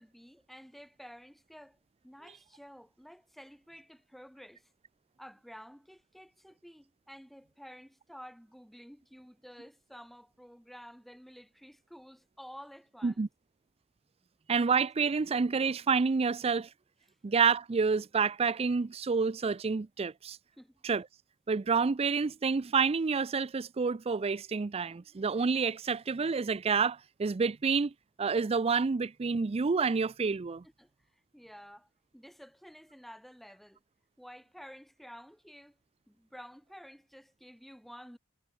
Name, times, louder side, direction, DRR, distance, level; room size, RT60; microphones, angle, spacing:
voice 1, 0.0-1.8 2.0-4.7 5.2-13.2 20.6-20.8 30.8-30.9 31.3-33.8 34.2-35.8 36.1-38.2, equal, ahead, 2.4 m, -51 dB
voice 2, 14.5-16.7 17.2-20.4 20.8-21.0 21.5-27.9 28.2-30.6, right 5 dB, 30° right, 0.4 m, -28 dB
head